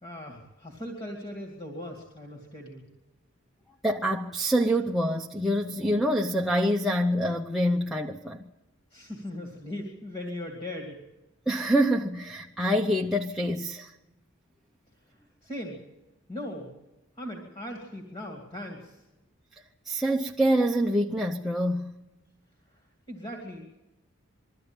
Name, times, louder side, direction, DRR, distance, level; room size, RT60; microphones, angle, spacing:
voice 1, 0.0-2.8 8.9-11.0 15.4-15.8 16.3-16.7 17.2-19.0 23.1-23.8, left 1 dB, 25° left, 2.4 m, -39 dB
voice 2, 3.8-8.4 11.5-13.9 19.9-22.0, equal, ahead, 0.7 m, -26 dB
22.5 x 14.0 x 8.9 m
head